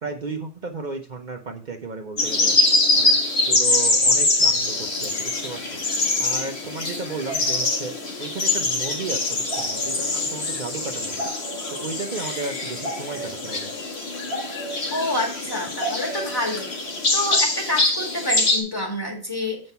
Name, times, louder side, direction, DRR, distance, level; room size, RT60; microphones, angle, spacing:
voice 1, 0.0-2.5 2.9-3.1 3.5-5.8 6.2-7.9 8.2-11.2 11.8-13.7, right 4 dB, 50° right, 3 dB, 0.9 m, -34 dB
sound 1, 2.2-18.6, left 2 dB, 75° left, 2.0 m, -23 dB
voice 2, 14.9-16.7 17.1-19.6, left 1 dB, 20° left, 0 dB, 2.3 m, -27 dB
7.7 x 5.3 x 5.5 m, 0.38 s
omnidirectional pair, 1.1 m